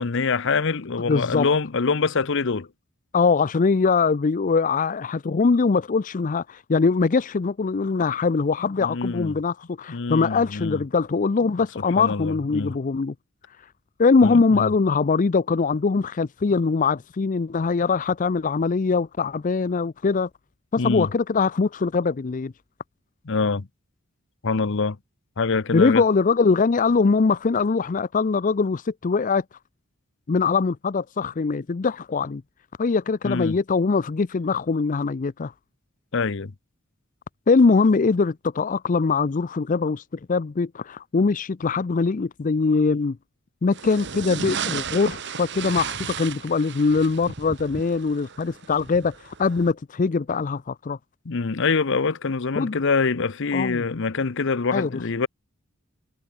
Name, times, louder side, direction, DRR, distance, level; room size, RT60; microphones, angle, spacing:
voice 1, 0.0-2.7 8.8-9.3 9.9-10.8 12.0-12.8 14.2-14.7 20.8-21.1 23.3-23.7 24.4-25.0 25.4-26.0 33.2-33.6 36.1-36.5 51.3-55.3, left 4 dB, 65° left, 0.8 m, -25 dB
voice 2, 1.1-1.5 3.1-13.1 14.0-20.3 20.7-22.5 25.7-29.4 30.3-32.4 32.8-35.5 37.5-40.0 40.3-43.2 43.6-51.0 52.6-52.8 53.5-53.8 54.7-55.0, left 4 dB, 40° left, 0.5 m, -22 dB
sound 1, 43.7-49.7, right 6 dB, 60° right, 1.6 m, -34 dB
head